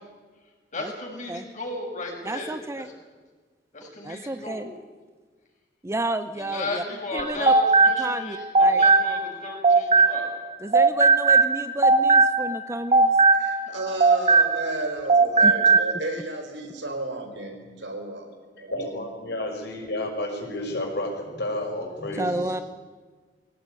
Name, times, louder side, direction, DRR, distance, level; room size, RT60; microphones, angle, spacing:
voice 1, 0.7-2.5 3.7-4.7 6.3-10.3, left 2 dB, 45° left, 1 dB, 6.7 m, -35 dB
voice 2, 2.2-2.9 3.8-4.7 5.8-6.8 7.1-7.5 8.0-8.8 10.6-13.1 15.4-15.5 22.2-22.6, right 1 dB, 15° right, 10 dB, 0.7 m, -31 dB
sound 1, 7.2-10.4 10.7-14.8 15.1-15.9, right 4 dB, 35° right, 1.6 m, -18 dB
voice 3, 13.3-19.0, right 2 dB, 75° right, 5 dB, 4.6 m, -33 dB
voice 4, 18.7-22.6, left 1 dB, 65° left, 2 dB, 5.9 m, -31 dB
22.0 x 17.5 x 9.9 m, 1.4 s
head